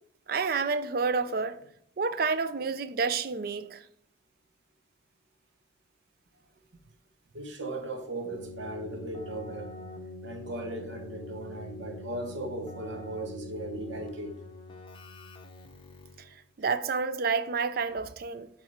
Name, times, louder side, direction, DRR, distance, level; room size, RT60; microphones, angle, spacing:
voice 1, 0.3-1.6 2.0-3.8 16.2-16.3 16.6-18.5, right 5 dB, 50° right, 0.4 m, -29 dB
voice 2, 7.3-9.8 10.2-14.4, right 2 dB, 75° right, 1.1 m, -37 dB
Keyboard (musical), 8.2-16.4, left 2 dB, 25° left, 0.6 m, -44 dB
7.8 x 3.7 x 4.3 m
head